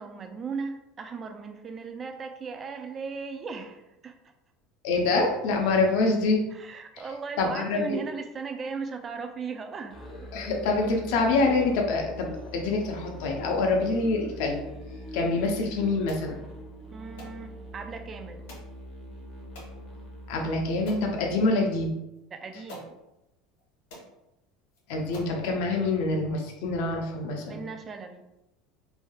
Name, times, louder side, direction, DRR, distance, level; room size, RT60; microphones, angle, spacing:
voice 1, 0.0-4.1 6.5-10.3 16.9-18.4 22.3-23.0 27.5-28.3, right 5 dB, 25° right, 6 dB, 0.3 m, -37 dB
voice 2, 4.8-6.4 7.4-8.0 10.3-12.3 12.5-14.6 15.1-16.3 20.3-21.9 24.9-27.6, left 3 dB, 70° left, 1 dB, 0.6 m, -25 dB
Musical instrument, 9.9-21.5, equal, 15° left, 0.7 m, -42 dB
sound 1, 16.1-16.3 17.2-17.4 18.5-18.7 19.5-19.7 20.3-20.4 20.9-21.1 22.1-22.2 22.7-22.9 23.6-23.7 23.9-24.1 24.7-24.8 25.1-25.4, equal, 90° left, 1.3 m, -44 dB
3.2 x 2.7 x 2.3 m, 0.91 s
supercardioid pair, 135°, 0 cm